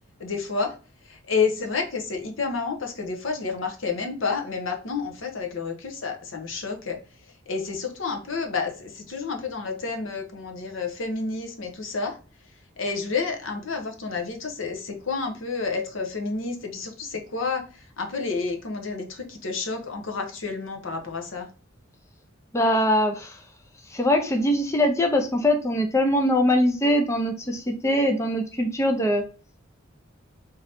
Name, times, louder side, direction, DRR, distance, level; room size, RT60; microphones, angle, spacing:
voice 1, 0.2-0.8 1.1-7.0 7.5-12.2 12.8-17.7 18.0-21.5, left 4 dB, 70° left, 4 dB, 0.8 m, -30 dB
voice 2, 22.5-23.4 23.9-29.2, left 1 dB, 15° left, 4 dB, 0.4 m, -22 dB
3.7 x 2.8 x 3.4 m, 0.34 s
head